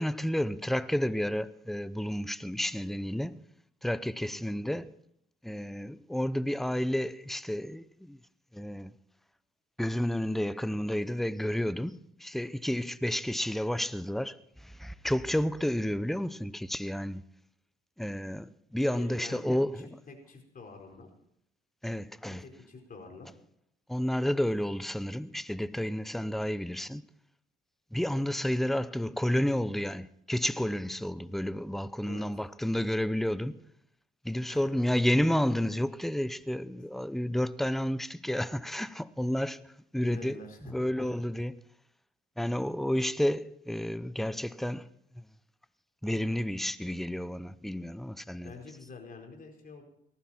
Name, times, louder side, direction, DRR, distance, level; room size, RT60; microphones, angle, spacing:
voice 1, 0.0-3.4 3.8-4.9 5.4-8.2 8.5-8.9 9.8-17.2 18.0-19.9 21.8-22.4 23.9-27.0 27.9-33.6 34.2-40.4 40.6-41.6 42.4-45.2 46.0-48.5, equal, ahead, 0.7 m, -31 dB
voice 2, 4.3-4.6 18.8-21.1 22.3-23.3 32.0-32.3 34.5-34.7 40.0-41.1 48.4-49.8, left 4 dB, 45° left, 4.6 m, -47 dB
19.0 x 15.0 x 4.4 m
cardioid pair, 90°, 20 cm